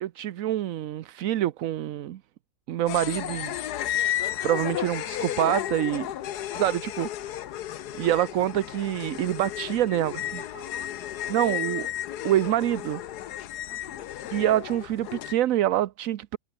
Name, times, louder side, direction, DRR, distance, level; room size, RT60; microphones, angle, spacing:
voice 1, 0.0-2.2 2.7-3.5 4.4-6.1 6.6-7.3 7.9-10.1 11.3-11.9 12.2-13.0 14.3-16.4, right 13 dB, 65° right, 1.0 m, -26 dB
sound 1, 2.9-15.3, left 12 dB, 80° left, 1.4 m, -33 dB
voice 2, 10.0-12.0 13.7-14.1, right 3 dB, 40° right, 3.5 m, -50 dB
omnidirectional pair, 1.7 m